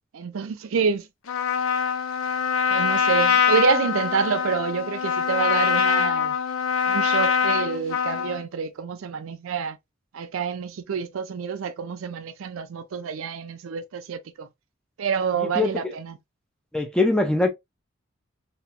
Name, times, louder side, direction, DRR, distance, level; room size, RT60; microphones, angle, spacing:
voice 1, 0.1-1.1 2.7-6.4 6.9-9.8 10.1-14.5 15.0-16.1, right 6 dB, 75° right, 0.4 m, -27 dB
Trumpet, 1.3-8.4, left 7 dB, 80° left, 0.5 m, -23 dB
voice 2, 15.3-15.9 16.7-17.5, left 2 dB, 5° left, 0.4 m, -23 dB
2.9 x 2.2 x 2.3 m
head